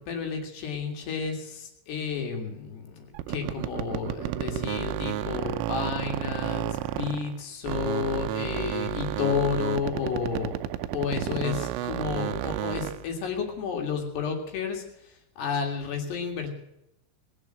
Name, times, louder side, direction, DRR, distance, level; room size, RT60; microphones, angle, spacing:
voice 1, 0.0-10.6 10.9-16.5, left 6 dB, 60° left, 3 dB, 3.8 m, -31 dB
sound 1, 3.1-7.4 7.6-13.1, right 13 dB, 80° right, 3.1 m, -31 dB
20.5 x 8.4 x 7.6 m, 0.83 s
omnidirectional pair, 5.9 m